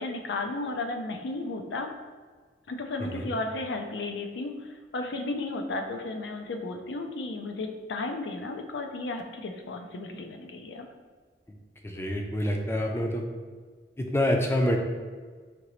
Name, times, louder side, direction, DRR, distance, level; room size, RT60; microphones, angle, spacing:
voice 1, 0.0-1.9 2.7-10.9, left 2 dB, 80° left, 4 dB, 0.5 m, -34 dB
voice 2, 11.8-13.2 14.0-14.8, equal, 15° left, 2 dB, 0.4 m, -27 dB
5.1 x 2.9 x 3.0 m, 1.5 s
head